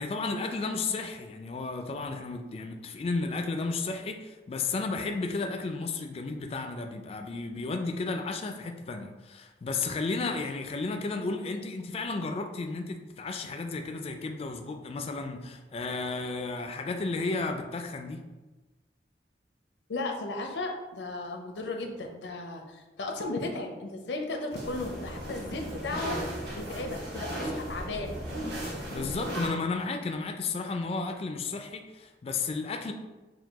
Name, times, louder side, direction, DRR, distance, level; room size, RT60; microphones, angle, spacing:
voice 1, 0.0-18.2 28.9-32.9, left 3 dB, 35° left, 5 dB, 0.3 m, -33 dB
voice 2, 19.9-26.2 26.5-28.1, left 2 dB, 90° left, 3 dB, 0.6 m, -35 dB
sound 1, 24.5-29.5, right 1 dB, 65° right, 1.2 m, -36 dB
4.6 x 2.2 x 3.5 m, 1.2 s
head